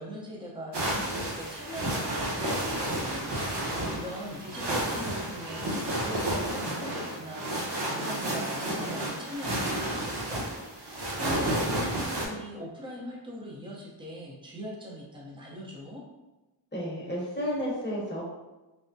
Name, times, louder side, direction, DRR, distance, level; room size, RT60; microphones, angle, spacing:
voice 1, 0.0-3.3 3.5-10.4 10.7-16.0, equal, 10° right, -4 dB, 0.7 m, -41 dB
sound 1, 0.7-12.3, right 1 dB, 60° right, 0.9 m, -31 dB
voice 2, 16.7-18.2, equal, 25° left, -5 dB, 1.0 m, -32 dB
3.4 x 2.0 x 2.7 m, 1.1 s
cardioid pair, 45°, 47 cm